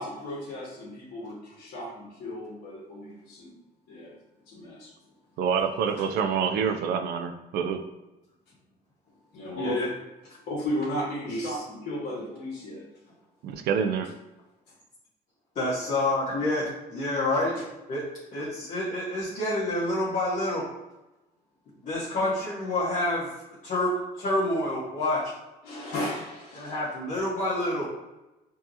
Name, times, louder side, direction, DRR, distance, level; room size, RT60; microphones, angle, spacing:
voice 1, 0.0-3.6 3.9-4.1 4.5-4.9 9.3-10.0 10.5-12.8 22.1-22.3 25.6-26.7, left 1 dB, 65° left, -6 dB, 1.2 m, -34 dB
voice 2, 5.4-7.8 13.4-14.1, right 6 dB, 75° right, 7 dB, 0.4 m, -27 dB
voice 3, 9.6-9.9 10.3-10.4 11.3-11.6 15.5-17.6 17.9-18.0 18.3-20.7 21.8-23.3 23.6-25.3 26.5-27.9, left 1 dB, 50° left, -8 dB, 1.1 m, -28 dB
4.4 x 2.9 x 2.6 m, 1.0 s
cardioid pair, 110°, 17 cm